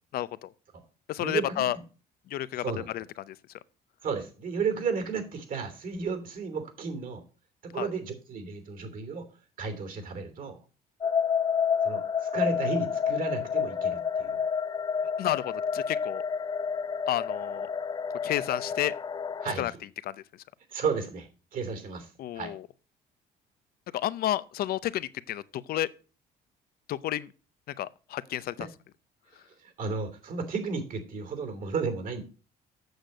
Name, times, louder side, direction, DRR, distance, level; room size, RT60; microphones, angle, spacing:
voice 1, 0.1-0.5 1.1-1.8 2.3-2.6 2.9-3.4 7.7-7.9 15.2-16.2 17.1-17.7 18.2-18.9 19.6-19.7 20.0-20.2 22.2-22.7 23.9-25.9 26.9-27.3 27.7-28.7, left 13 dB, 65° left, 0.6 m, -31 dB
voice 2, 1.2-1.7 2.6-2.9 4.0-7.2 7.6-9.3 9.6-10.6 11.8-14.4 19.4-19.7 20.7-22.5 28.6-28.7 29.6-32.2, right 5 dB, 55° right, 3.0 m, -33 dB
sound 1, 11.0-19.5, left 7 dB, 25° left, 0.4 m, -29 dB
8.0 x 6.7 x 6.4 m
cardioid pair, 110°, 17 cm